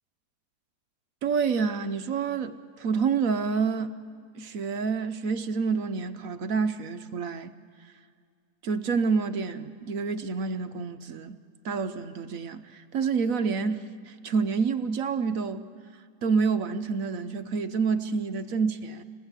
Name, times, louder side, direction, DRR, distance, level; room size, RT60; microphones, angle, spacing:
voice 1, 1.2-3.9 4.3-7.5 8.6-11.4 11.6-15.6 16.2-19.0, right 5 dB, 60° right, 9 dB, 0.9 m, -28 dB
27.0 x 19.5 x 8.1 m, 2.2 s
omnidirectional pair, 2.1 m